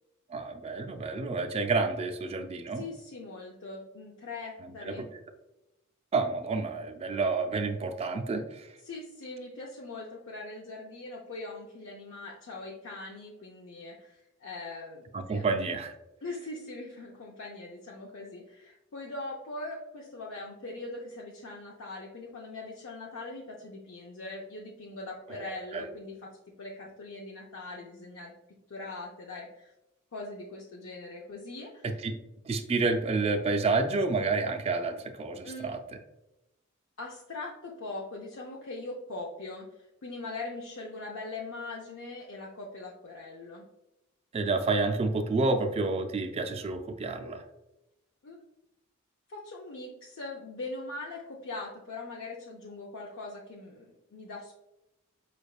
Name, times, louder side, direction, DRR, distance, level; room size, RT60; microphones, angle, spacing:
voice 1, 0.3-2.8 4.6-5.1 6.1-8.7 15.1-16.0 25.3-25.9 31.8-32.1 32.4-35.8 44.3-47.4, right 3 dB, 30° right, 6 dB, 0.3 m, -29 dB
voice 2, 2.7-5.1 8.8-15.4 16.2-26.3 26.6-28.3 28.7-29.7 30.1-32.0 35.4-35.7 37.0-43.6 48.2-48.4 49.3-54.6, left 2 dB, 65° left, -2 dB, 0.5 m, -41 dB
4.9 x 3.3 x 2.3 m, 0.93 s
head